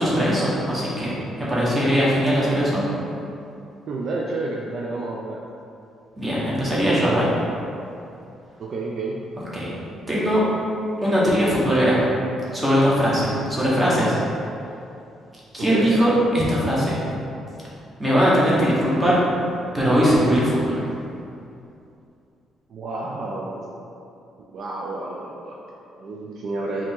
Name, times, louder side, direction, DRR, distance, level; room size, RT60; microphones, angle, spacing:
voice 1, 0.0-2.8 6.2-7.3 9.5-9.7 10.1-10.4 11.0-12.0 12.5-14.2 15.5-17.0 18.0-19.2 19.7-20.8, equal, 15° right, -7 dB, 1.0 m, -20 dB
voice 2, 3.9-5.4 8.6-9.2 15.6-16.0 22.7-23.8 24.5-26.8, right 2 dB, 50° right, -2 dB, 0.4 m, -30 dB
5.0 x 2.8 x 3.7 m, 2.6 s
cardioid pair, 150°, 0 cm